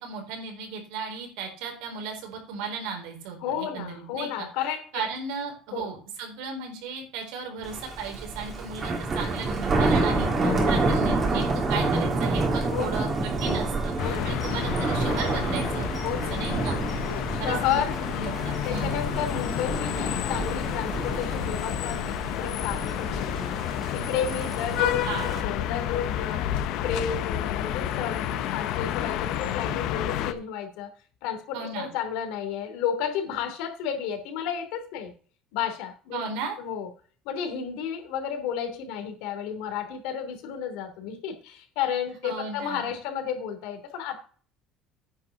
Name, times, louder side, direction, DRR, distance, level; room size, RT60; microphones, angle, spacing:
voice 1, 0.0-16.8 17.1-17.8 18.2-19.0 24.8-25.3 31.5-31.9 36.1-36.5 42.2-42.9, right 5 dB, 85° right, 2 dB, 4.4 m, -35 dB
voice 2, 3.4-5.1 5.7-5.9 10.4-10.8 12.7-13.1 14.0-14.3 16.0-16.4 17.0-18.0 18.6-23.6 23.9-26.4 26.7-30.9 31.2-35.1 35.5-36.2 36.6-36.9 37.2-44.2, left 8 dB, 75° left, 5 dB, 3.0 m, -32 dB
Thunder, 7.6-25.4, right 3 dB, 25° right, 1.9 m, -28 dB
sound 1, 14.0-30.3, left 11 dB, 55° left, 0.9 m, -30 dB
9.6 x 5.7 x 6.6 m, 0.41 s
cardioid pair, 175°, 0 cm